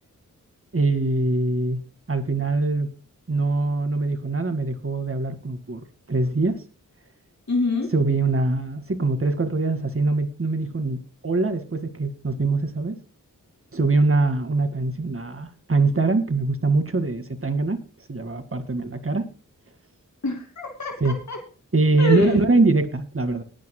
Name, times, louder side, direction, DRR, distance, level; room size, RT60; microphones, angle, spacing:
voice 1, 0.7-1.8 2.1-2.9 3.3-5.8 6.1-6.6 7.9-13.0 13.7-17.8 18.1-19.2 21.0-21.2 21.7-23.4, right 3 dB, 40° right, 9 dB, 2.1 m, -23 dB
voice 2, 7.5-7.9 20.2-21.4 22.0-22.4, left 2 dB, 60° left, 2 dB, 2.6 m, -26 dB
20.5 x 9.7 x 2.3 m, 0.34 s
wide cardioid pair, 85°, 33 cm